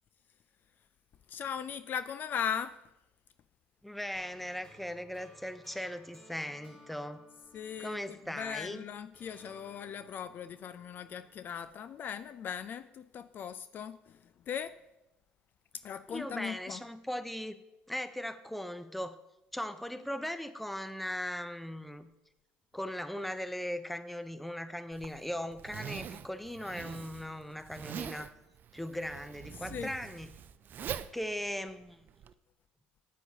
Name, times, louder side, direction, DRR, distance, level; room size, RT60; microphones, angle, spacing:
voice 1, 1.3-2.8 7.5-14.8 15.8-16.8 29.6-29.9, left 8 dB, 50° left, 0.3 m, -39 dB
voice 2, 3.8-7.2 7.8-8.9 16.1-17.6 17.9-19.2 19.5-22.1 22.7-28.3 28.7-30.3 31.1-32.0, equal, ahead, 0.6 m, -38 dB
sound 1, 4.1-8.7 9.1-12.2, equal, 25° left, 3.1 m, -60 dB
Zipper (clothing), 24.9-32.3, right 9 dB, 50° right, 0.4 m, -44 dB
8.2 x 8.2 x 2.8 m
supercardioid pair, 75°, 4 cm